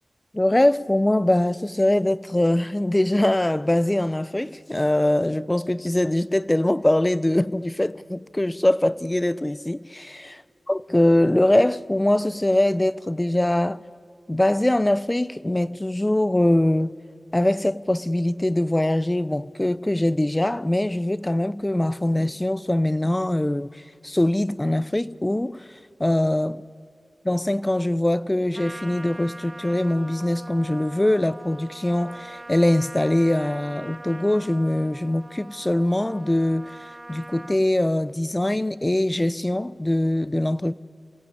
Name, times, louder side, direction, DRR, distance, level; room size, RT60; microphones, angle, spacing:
voice 1, 0.3-10.4 10.7-13.8 14.3-17.0 17.3-25.7 26.0-26.6 27.3-36.8 37.1-40.7, left 1 dB, 20° left, 0.6 m, -22 dB
Trumpet, 28.5-37.6, right 1 dB, 25° right, 1.1 m, -42 dB
27.5 x 16.0 x 9.8 m
cardioid pair, 45°, 0 cm